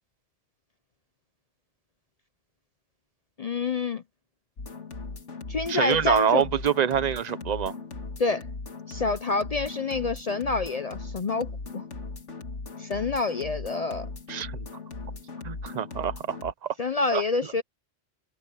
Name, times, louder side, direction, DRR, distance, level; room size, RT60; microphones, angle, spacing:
voice 1, 3.4-4.0 5.5-6.5 8.2-8.5 8.9-11.8 12.8-14.1 16.8-17.6, left 3 dB, 45° left, 0.5 m, -27 dB
sound 1, 4.6-16.5, left 3 dB, 80° left, 2.2 m, -38 dB
voice 2, 5.7-7.7 14.3-14.5 15.4-16.5 17.1-17.2, right 8 dB, 40° right, 0.8 m, -25 dB
omnidirectional pair, 1.2 m